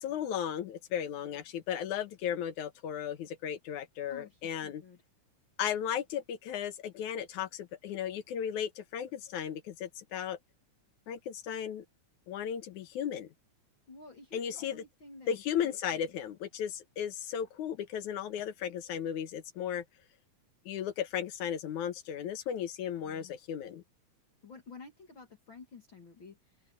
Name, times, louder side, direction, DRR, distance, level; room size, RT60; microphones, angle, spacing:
voice 1, 0.0-4.8 5.6-10.4 11.1-11.8 12.3-13.3 14.3-14.8 15.3-19.8 20.7-23.8, left 9 dB, 80° left, 2.7 m, -35 dB
voice 2, 4.1-5.0 13.9-16.0 22.9-23.3 24.4-26.7, left 4 dB, 45° left, 2.9 m, -52 dB
open air
omnidirectional pair, 3.4 m